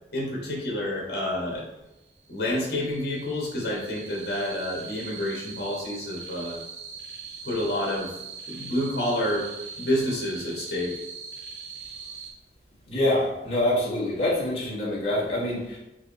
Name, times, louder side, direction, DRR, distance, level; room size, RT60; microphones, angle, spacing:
voice 1, 0.1-1.7 2.3-6.6 7.5-8.1 8.5-9.5 9.8-11.0, left 1 dB, 65° left, -2 dB, 1.4 m, -28 dB
sound 1, 2.3-12.3, right 5 dB, 90° right, 1.5 m, -41 dB
voice 2, 12.9-15.8, left 1 dB, 35° left, -6 dB, 1.5 m, -25 dB
4.7 x 2.8 x 4.0 m, 0.94 s
head